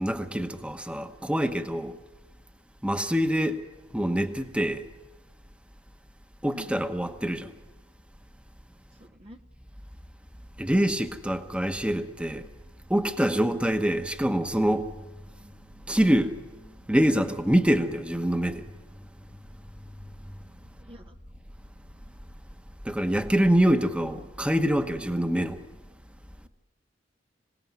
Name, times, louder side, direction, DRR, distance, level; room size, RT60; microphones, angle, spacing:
voice 1, 0.0-2.0 2.8-3.6 3.9-4.9 6.4-7.5 10.6-12.5 12.9-15.0 15.4-19.0 19.8-20.2 22.8-25.6, equal, 5° right, 1.0 m, -25 dB
voice 2, 9.0-9.4 20.8-21.2, equal, 30° right, 0.8 m, -46 dB
26.0 x 18.0 x 9.4 m
head